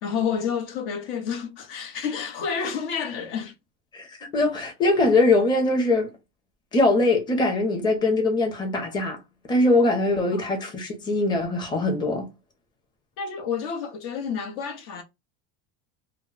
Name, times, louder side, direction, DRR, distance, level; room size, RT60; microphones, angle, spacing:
voice 1, 0.0-3.5 10.3-10.4 13.2-15.0, left 6 dB, 70° left, 0.8 m, -29 dB
voice 2, 3.9-6.1 6.7-9.2 9.5-12.3, left 2 dB, 15° left, 0.6 m, -22 dB
2.2 x 2.0 x 3.7 m
supercardioid pair, 140°, 29 cm